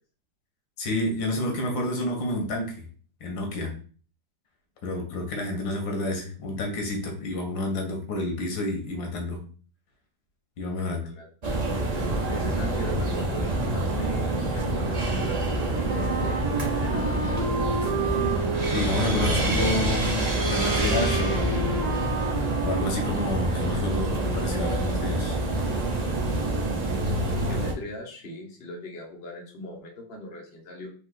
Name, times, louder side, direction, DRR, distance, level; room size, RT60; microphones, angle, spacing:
voice 1, 0.8-2.8 3.2-3.7 4.8-9.4 10.6-11.1 18.7-21.8 22.6-25.4, left 2 dB, 80° left, 2 dB, 1.8 m, -29 dB
voice 2, 10.8-11.3 11.9-17.7 27.3-30.9, left 1 dB, 35° left, -1 dB, 1.2 m, -40 dB
sound 1, 11.4-27.7, right 2 dB, 60° right, 0.4 m, -26 dB
Wind instrument woodwind instrument, 15.8-23.9, right 4 dB, 30° right, 0.8 m, -32 dB
4.9 x 2.7 x 3.8 m, 0.41 s
omnidirectional pair, 2.0 m